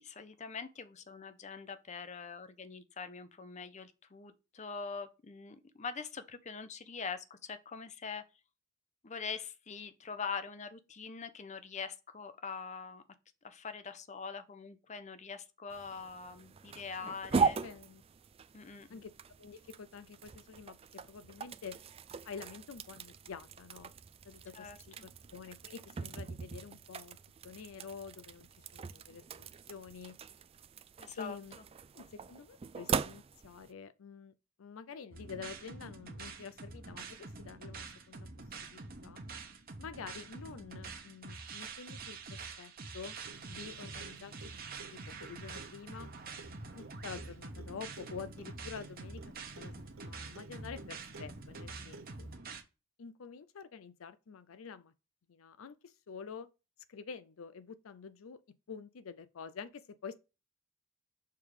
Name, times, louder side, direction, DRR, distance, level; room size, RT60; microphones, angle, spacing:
voice 1, 0.0-8.2 9.0-13.0 13.4-17.6 18.5-19.0 24.5-25.1 31.0-31.4, left 5 dB, 35° left, 0.6 m, -43 dB
sound 1, 15.7-33.7, right 5 dB, 30° right, 0.3 m, -40 dB
voice 2, 17.0-18.0 18.9-19.1 19.4-21.8 22.2-23.9 24.2-27.2 27.4-30.2 31.1-31.6 31.9-34.3 34.6-38.3 38.7-39.2 39.8-43.2 43.5-44.5 44.9-46.1 46.7-52.3 53.0-54.9 55.3-56.5 56.9-58.4 58.7-60.1, left 6 dB, 80° left, 0.5 m, -48 dB
sound 2, 35.1-52.6, right 4 dB, 45° right, 1.1 m, -46 dB
Clock, 43.2-52.3, right 2 dB, 85° right, 0.8 m, -53 dB
6.7 x 3.6 x 4.8 m
head